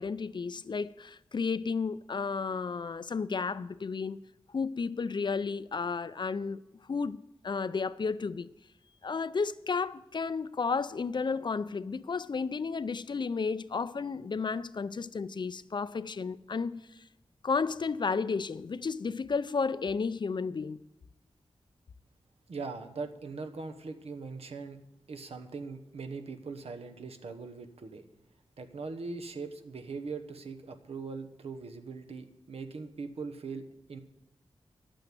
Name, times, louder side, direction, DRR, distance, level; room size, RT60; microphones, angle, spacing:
voice 1, 0.0-4.2 4.5-6.6 6.9-8.5 9.0-17.0 17.4-20.8, left 5 dB, 50° left, 0.4 m, -32 dB
voice 2, 22.5-24.8 25.1-28.0 28.6-34.0, right 4 dB, 85° right, 1.0 m, -41 dB
11.0 x 9.0 x 7.6 m
wide cardioid pair, 90°, 10 cm